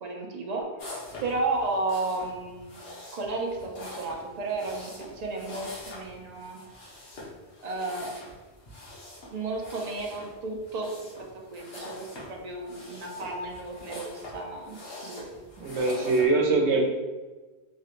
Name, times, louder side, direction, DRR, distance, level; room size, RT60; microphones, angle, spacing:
voice 1, 0.0-2.7 3.1-6.6 7.6-8.1 9.3-10.9 11.5-14.8 15.0-15.3, right 2 dB, 55° right, 0 dB, 0.5 m, -33 dB
sound 1, 0.8-16.3, left 2 dB, 65° left, 1.1 m, -44 dB
voice 2, 15.6-16.8, right 3 dB, 90° right, 0 dB, 0.9 m, -23 dB
3.2 x 2.8 x 2.4 m, 1.3 s
omnidirectional pair, 1.1 m